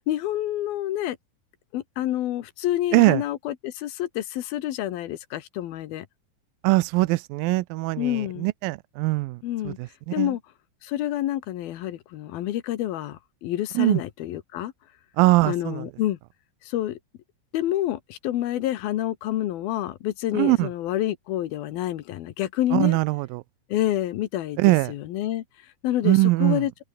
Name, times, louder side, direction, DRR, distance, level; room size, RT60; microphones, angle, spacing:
voice 1, 0.1-1.2 1.7-6.1 8.0-8.5 9.4-9.8 10.1-10.4 10.8-14.7 15.4-16.2 16.6-17.0 17.5-23.0 23.7-25.4 25.8-26.7, left 13 dB, 70° left, 2.9 m, -28 dB
voice 2, 6.6-9.4 9.7-9.9 10.2-10.3 13.8-14.0 15.2-15.8 20.3-20.7 22.7-23.4 24.6-24.9 26.0-26.6, right 20 dB, 90° right, 2.0 m, -21 dB
omnidirectional pair, 4.8 m